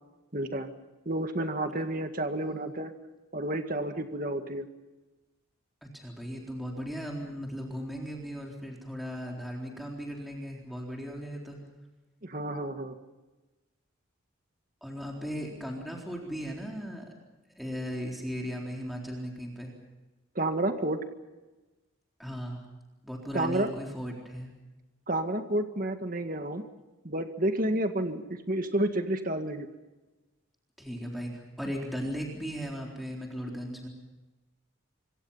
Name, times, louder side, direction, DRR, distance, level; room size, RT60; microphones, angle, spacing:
voice 1, 0.3-0.7 1.1-2.9 3.3-4.7 12.2-13.0 20.4-21.0 23.3-23.7 25.1-26.6 27.0-29.7, right 1 dB, 45° right, 7 dB, 1.9 m, -30 dB
voice 2, 5.8-11.6 14.8-17.1 17.6-19.7 22.2-22.6 23.0-24.5 30.8-33.9, equal, ahead, -1 dB, 3.9 m, -37 dB
26.0 x 24.5 x 5.7 m, 1.1 s
head